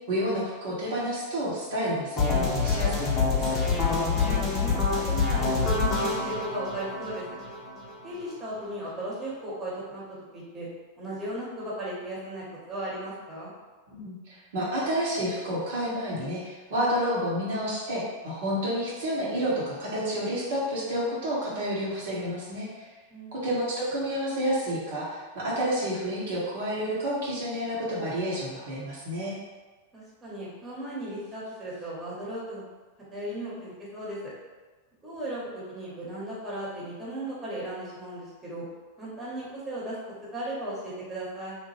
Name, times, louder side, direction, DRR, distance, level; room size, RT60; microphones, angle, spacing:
voice 1, 0.1-3.6 13.9-22.9 23.4-29.4, equal, 55° right, -8 dB, 0.8 m, -30 dB
sound 1, 2.2-8.1, left 4 dB, 30° left, 0.7 m, -26 dB
voice 2, 4.1-4.8 5.1-7.4 8.0-10.0 10.3-10.7 11.0-13.5 23.1-23.4 29.9-32.6 33.1-34.2 35.0-38.6 39.0-40.0 40.3-41.6, right 1 dB, 15° right, -7 dB, 1.0 m, -36 dB
2.9 x 2.1 x 3.1 m, 1.3 s
figure-of-eight pair, 90°, 0 cm